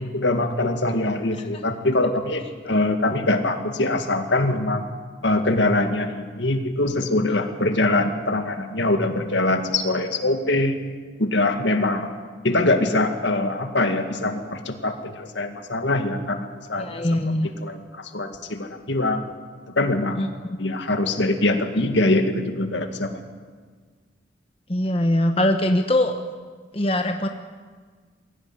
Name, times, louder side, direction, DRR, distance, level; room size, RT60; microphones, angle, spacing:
voice 1, 0.0-4.8 5.2-10.8 11.2-12.1 12.4-17.1 17.6-19.2 19.8-20.3 20.6-23.2, left 2 dB, 70° left, 6 dB, 2.1 m, -23 dB
voice 2, 16.8-17.5 20.2-20.3 24.7-26.2 26.7-27.3, left 1 dB, 30° left, 5 dB, 1.0 m, -21 dB
23.0 x 16.0 x 9.6 m, 1.5 s
head